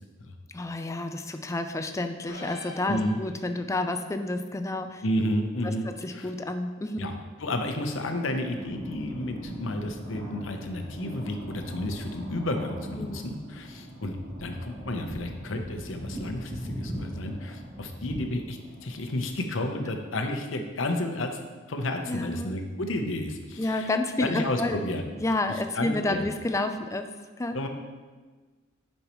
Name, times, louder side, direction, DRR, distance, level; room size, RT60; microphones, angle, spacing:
voice 1, 0.5-5.0 5.6-7.1 13.0-13.2 22.1-22.6 23.6-24.8 25.2-27.1 27.4-27.5, left 2 dB, 15° left, 7 dB, 0.4 m, -30 dB
sound 1, 2.3-3.7, left 1 dB, 55° left, 1.4 m, -44 dB
voice 2, 2.9-3.2 5.0-6.3 7.0-21.3 21.7-23.9 24.2-25.1 25.7-26.3 27.5-27.7, left 1 dB, 75° left, 5 dB, 0.8 m, -31 dB
sound 2, 8.4-19.3, equal, 65° right, 2.4 m, -40 dB
10.0 x 5.4 x 3.0 m, 1.4 s
head